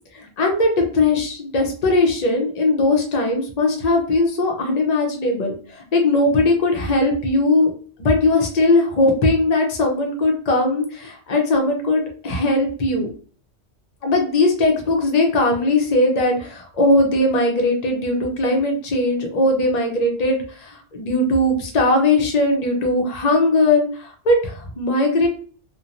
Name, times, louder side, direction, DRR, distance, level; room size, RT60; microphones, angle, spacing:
voice 1, 0.1-7.7 8.0-13.1 14.0-25.3, left 2 dB, 40° left, 2 dB, 0.7 m, -19 dB
2.9 x 2.2 x 2.5 m, 0.43 s
omnidirectional pair, 1.2 m